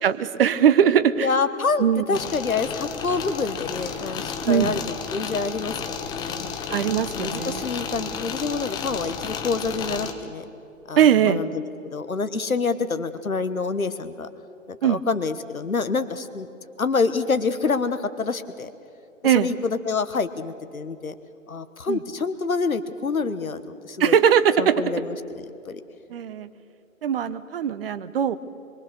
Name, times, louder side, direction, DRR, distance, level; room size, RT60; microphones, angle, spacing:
voice 1, 0.0-1.3 1.8-2.2 4.4-4.8 6.7-7.7 11.0-11.4 14.8-15.0 19.2-19.5 21.9-22.0 24.0-24.8 26.1-26.5 27.0-28.4, right 9 dB, 45° right, 14 dB, 1.0 m, -20 dB
voice 2, 1.2-4.8 5.1-10.4 10.9-11.6 11.9-14.3 14.7-16.5 16.8-18.7 19.2-21.1 21.5-24.2 24.6-25.8, left 4 dB, 85° left, 11 dB, 1.3 m, -27 dB
sound 1, 2.1-10.1, left 6 dB, 10° left, 0.8 m, -32 dB
25.0 x 23.0 x 6.6 m, 2.8 s
figure-of-eight pair, 130°, 41 cm